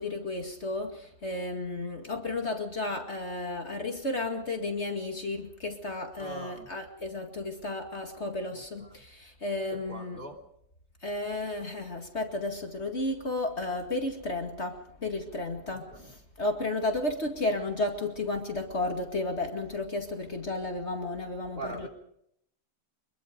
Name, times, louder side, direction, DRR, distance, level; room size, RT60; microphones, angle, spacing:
voice 1, 0.0-10.2 11.0-21.9, left 2 dB, 40° left, 3 dB, 2.4 m, -33 dB
voice 2, 6.2-6.7 8.5-9.0 9.7-10.4 15.7-16.1 21.5-21.9, right 2 dB, 30° right, 4 dB, 3.1 m, -42 dB
24.5 x 22.0 x 5.2 m, 0.73 s
omnidirectional pair, 1.8 m